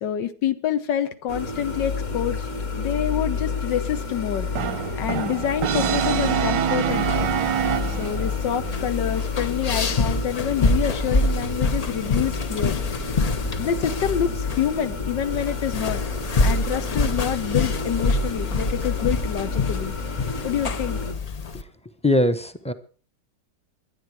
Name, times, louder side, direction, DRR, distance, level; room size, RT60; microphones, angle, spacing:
voice 1, 0.0-2.5 2.8-4.5 5.0-7.3 8.0-12.8 13.6-16.0 16.4-19.9 20.4-21.0, left 9 dB, 90° left, 10 dB, 1.7 m, -27 dB
sound 1, 1.3-21.1, left 3 dB, 45° left, 2.1 m, -30 dB
Brass instrument, 4.6-8.4, right 9 dB, 85° right, 1.5 m, -25 dB
sound 2, 6.9-21.6, left 3 dB, 60° left, 0.4 m, -26 dB
voice 2, 22.0-22.7, left 1 dB, 5° left, 9 dB, 0.6 m, -20 dB
23.0 x 9.3 x 4.8 m, 0.39 s
omnidirectional pair, 1.9 m